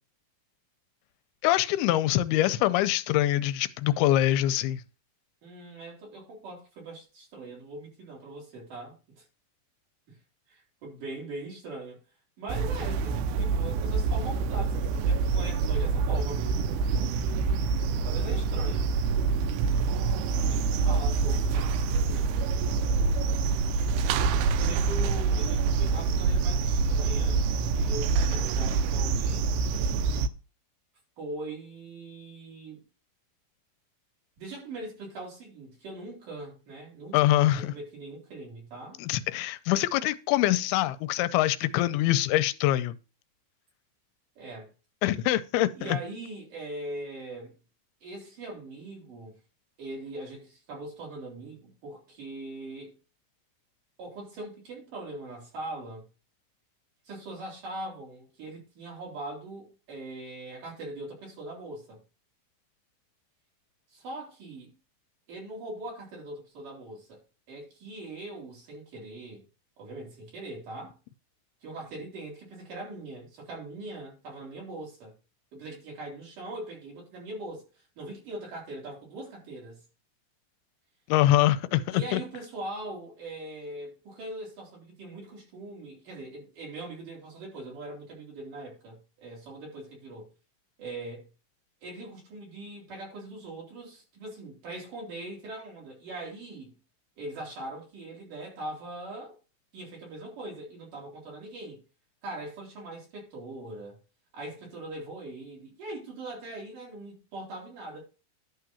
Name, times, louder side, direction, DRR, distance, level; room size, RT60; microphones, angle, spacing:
voice 1, 1.4-4.8 37.1-37.7 39.0-42.9 45.0-46.0 81.1-82.2, left 14 dB, 85° left, 2.6 m, -24 dB
voice 2, 5.4-9.2 10.1-10.2 10.5-12.0 12.4-17.3 18.1-18.9 20.5-21.7 22.1-22.3 24.6-27.5 27.7-29.7 31.2-32.8 34.4-39.0 44.4-44.7 45.8-47.6 48.0-49.4 49.8-52.9 54.0-56.1 57.1-62.0 63.9-64.7 65.3-67.2 67.5-69.4 69.8-71.0 71.6-75.1 75.5-77.6 78.0-79.8 81.9-90.3 90.8-91.3 91.8-96.8 97.2-99.4 99.7-101.8 102.2-104.0 104.3-108.0, right 2 dB, 55° right, 5.6 m, -41 dB
sound 1, 12.5-30.3, right 4 dB, 90° right, 2.7 m, -26 dB
11.5 x 3.8 x 7.0 m
omnidirectional pair, 4.5 m